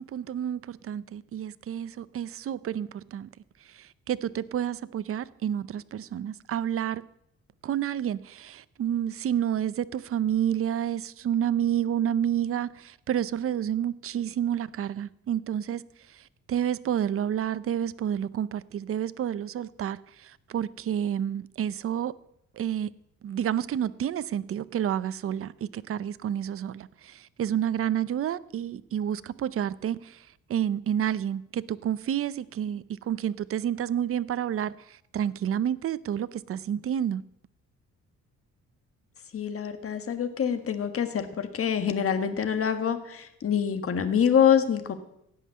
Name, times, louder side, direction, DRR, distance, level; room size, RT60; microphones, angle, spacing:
voice 1, 0.0-3.3 3.7-7.0 7.6-15.8 16.1-16.2 16.5-22.1 22.6-22.9 23.2-37.2, right 10 dB, 45° right, 0.6 m, -29 dB
voice 2, 39.3-44.9, left 8 dB, 50° left, 1.6 m, -25 dB
16.0 x 5.7 x 9.4 m
cardioid pair, 90°, 30 cm